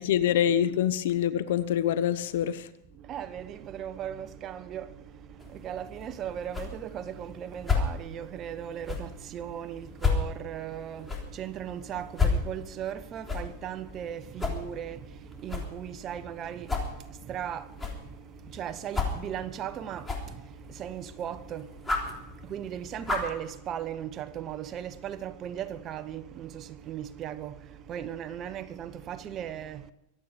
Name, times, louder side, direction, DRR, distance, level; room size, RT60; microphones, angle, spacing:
voice 1, 0.0-2.7, left 10 dB, 75° left, 1.0 m, -25 dB
voice 2, 3.0-29.9, right 9 dB, 35° right, 1.1 m, -38 dB
sound 1, 5.4-23.4, left 4 dB, 10° left, 3.5 m, -34 dB
24.0 x 9.0 x 5.1 m
supercardioid pair, 130°, 0 cm